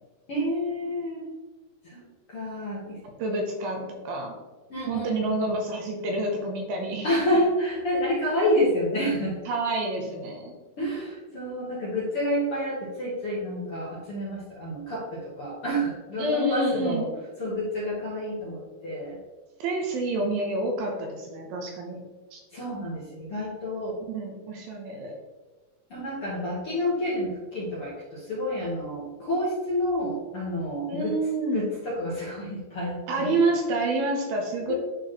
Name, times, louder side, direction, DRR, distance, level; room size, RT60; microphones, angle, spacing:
voice 1, 0.3-1.3 1.8-2.0 2.3-3.0 4.7-5.3 7.0-9.4 10.8-17.1 17.4-19.2 22.5-24.0 25.9-31.2 31.5-33.3 34.7-34.8, equal, 50° left, -7 dB, 1.7 m, -29 dB
voice 2, 3.2-4.4 4.9-7.1 9.5-10.6 16.2-17.0 19.6-22.0 22.3-22.4 24.1-25.1 30.9-31.7 33.1-34.7, right 2 dB, 75° right, 1 dB, 2.6 m, -28 dB
10.5 x 4.4 x 3.1 m, 1.2 s
omnidirectional pair, 4.7 m